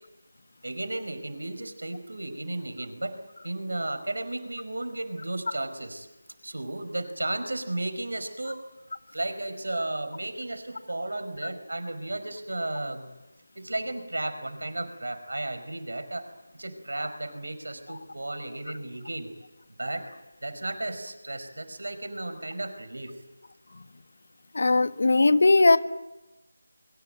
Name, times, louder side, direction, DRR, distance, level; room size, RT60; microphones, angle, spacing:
voice 1, 0.6-3.2 3.4-6.1 6.4-8.6 9.1-13.1 13.5-19.3 19.8-20.1 20.4-23.2, right 2 dB, 70° right, 10 dB, 4.9 m, -34 dB
voice 2, 24.5-25.8, left 3 dB, 55° left, 12 dB, 1.3 m, -19 dB
27.0 x 23.5 x 7.9 m, 1.0 s
figure-of-eight pair, 165°, 0 cm